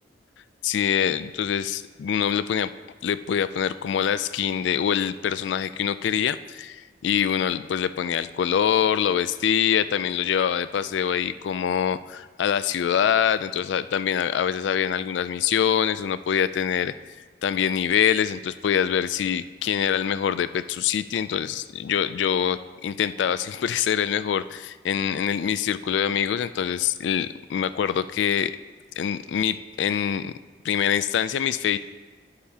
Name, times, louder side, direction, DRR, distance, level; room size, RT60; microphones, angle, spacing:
voice 1, 0.6-2.7 3.0-28.5 29.0-30.3 30.6-31.8, left 8 dB, 75° left, 14 dB, 0.3 m, -24 dB
18.0 x 6.7 x 2.8 m, 1.4 s
head